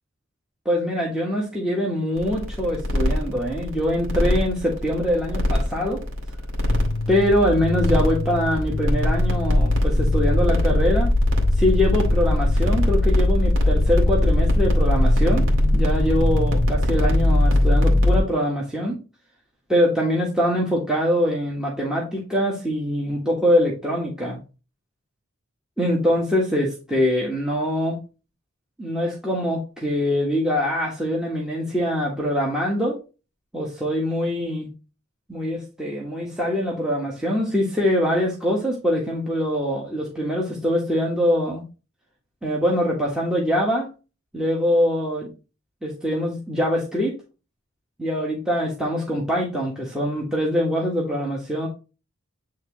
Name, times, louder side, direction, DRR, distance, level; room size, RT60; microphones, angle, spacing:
voice 1, 0.6-6.0 7.1-11.1 11.5-15.5 15.7-19.0 19.7-24.4 25.8-28.0 28.8-33.0 33.5-34.7 35.3-41.6 42.4-43.9 44.3-45.3 45.8-47.1 48.0-51.7, equal, 5° right, -3 dB, 1.5 m, -23 dB
sound 1, 2.2-18.2, left 1 dB, 70° right, 2.2 m, -20 dB
sound 2, 6.7-16.7, left 3 dB, 45° left, 0.5 m, -29 dB
9.3 x 3.7 x 3.1 m, 0.31 s
head